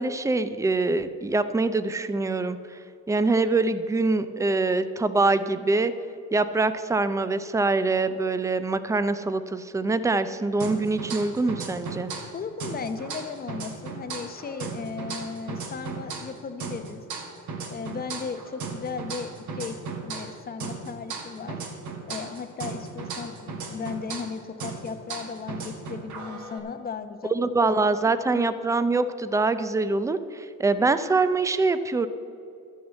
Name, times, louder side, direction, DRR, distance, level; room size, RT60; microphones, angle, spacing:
voice 1, 0.0-2.8 3.1-5.9 6.3-12.1 27.3-32.1, right 3 dB, 10° right, 12 dB, 0.5 m, -24 dB
sound 1, 10.6-12.3 12.6-16.3 16.6-20.3 20.6-24.3 24.6-26.6, right 4 dB, 60° right, 2.0 m, -36 dB
voice 2, 12.3-17.0 17.7-19.8 20.0-21.6 22.1-27.6 28.3-28.4, left 5 dB, 30° left, 9 dB, 0.8 m, -36 dB
12.0 x 6.4 x 8.1 m, 2.5 s
cardioid pair, 125°, 33 cm